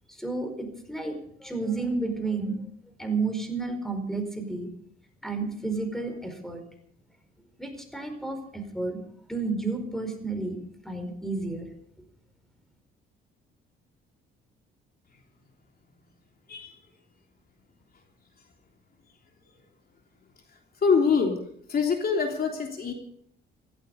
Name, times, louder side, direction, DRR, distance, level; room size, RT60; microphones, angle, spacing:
voice 1, 0.1-2.6 3.0-4.7 5.2-6.6 7.6-9.0 9.3-10.6 10.8-11.7, right 3 dB, ahead, 7 dB, 4.8 m, -31 dB
voice 2, 20.8-21.4 21.7-22.9, left 5 dB, 50° left, 2 dB, 3.3 m, -24 dB
16.5 x 15.5 x 5.4 m, 0.65 s
cardioid pair, 90°, 20 cm